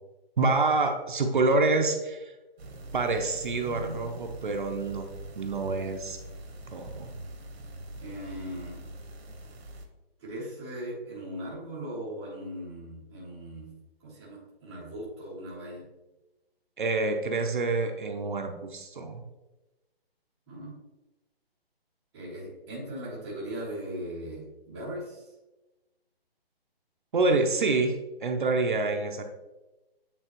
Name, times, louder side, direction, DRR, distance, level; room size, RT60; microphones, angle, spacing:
voice 1, 0.4-2.3 2.9-5.1 5.4-6.2 6.7-7.1 16.8-19.2 27.1-27.9 28.2-29.3, right 3 dB, 55° right, 4 dB, 0.7 m, -27 dB
sound 1, 2.6-9.9, right 1 dB, 85° right, 1.3 m, -43 dB
voice 2, 8.0-8.8 10.2-13.7 14.0-15.8 20.5-20.8 22.1-25.3, equal, 5° right, -12 dB, 0.8 m, -39 dB
8.9 x 3.6 x 3.0 m, 1.1 s
hypercardioid pair, 175°, 31 cm